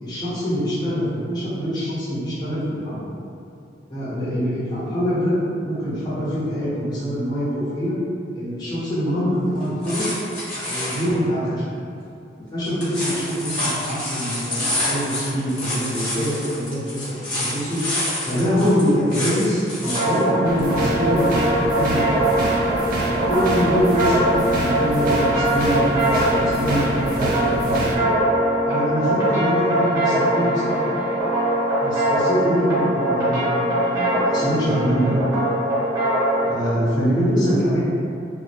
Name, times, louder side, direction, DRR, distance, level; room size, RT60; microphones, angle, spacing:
voice 1, 0.0-3.0 3.9-5.3 5.6-8.0 8.3-10.1 10.6-11.6 12.4-17.8 18.2-22.2 23.1-28.1 28.7-30.9 31.8-35.2 36.4-37.8, equal, 25° left, -12 dB, 0.7 m, -24 dB
sound 1, 9.6-11.1 12.7-20.2 20.6-20.7, left 1 dB, 50° left, 1.1 m, -28 dB
sound 2, 19.8-36.5, right 1 dB, 20° right, 0.8 m, -21 dB
sound 3, 20.4-28.0, right 2 dB, 55° right, 0.3 m, -27 dB
2.2 x 2.1 x 2.7 m, 2.5 s
head